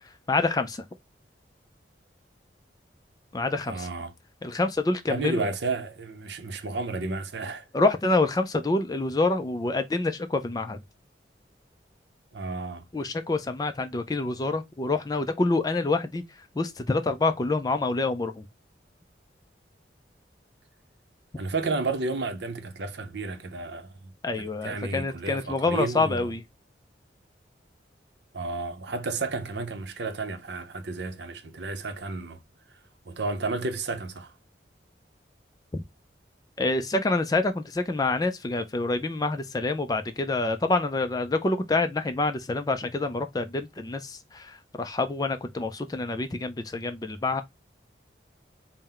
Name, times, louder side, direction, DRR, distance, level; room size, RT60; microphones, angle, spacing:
voice 1, 0.3-0.8 3.3-3.9 4.4-5.5 7.7-10.8 12.9-16.2 16.6-18.4 24.2-26.4 36.6-47.4, left 3 dB, 20° left, 0.3 m, -27 dB
voice 2, 3.7-4.1 5.1-7.7 12.3-12.8 21.4-26.3 28.3-32.4 33.1-34.3, right 3 dB, 70° right, 0.7 m, -32 dB
4.2 x 2.1 x 3.7 m
head